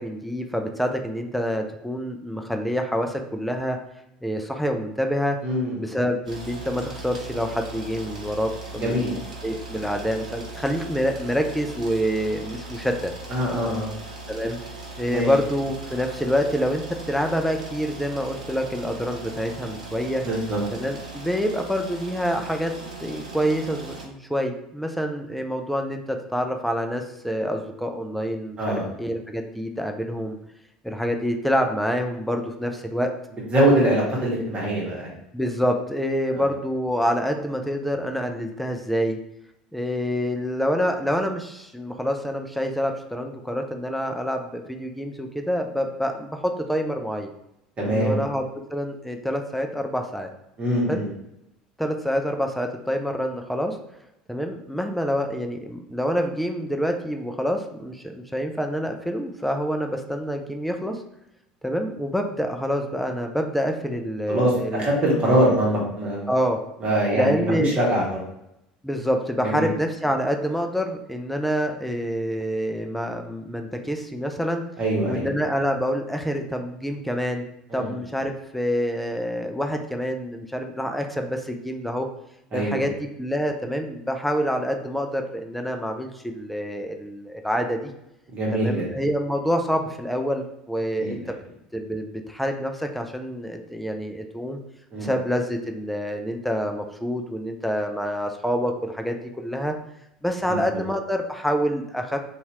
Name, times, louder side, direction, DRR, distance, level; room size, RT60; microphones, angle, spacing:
voice 1, 0.0-3.8 4.2-5.4 5.8-9.2 9.4-13.1 14.3-14.6 15.0-20.2 20.7-22.7 23.0-30.4 30.8-33.1 35.3-39.2 39.7-47.3 47.9-48.5 48.7-50.3 50.9-51.0 51.8-53.8 54.3-61.0 61.6-64.9 66.3-66.6 67.1-67.7 68.8-74.6 75.1-77.5 77.7-82.1 82.5-82.9 83.2-87.9 88.5-91.3 91.7-94.6 95.0-99.7 100.2-102.2, equal, ahead, 4 dB, 0.3 m, -27 dB
voice 2, 5.4-5.8 8.8-9.2 13.3-13.9 15.1-15.3 20.2-20.6 28.6-28.9 33.5-35.1 36.3-36.4 47.8-48.2 50.6-51.1 64.3-66.3 66.8-68.2 69.4-69.7 74.8-75.2 77.7-77.9 82.5-82.9 88.3-88.9 91.0-91.2 94.9-95.1, right 1 dB, 30° right, -4 dB, 1.1 m, -23 dB
sound 1, 6.2-24.1, right 3 dB, 80° right, 0.4 m, -39 dB
2.7 x 2.4 x 2.9 m, 0.84 s
figure-of-eight pair, 65°, 4 cm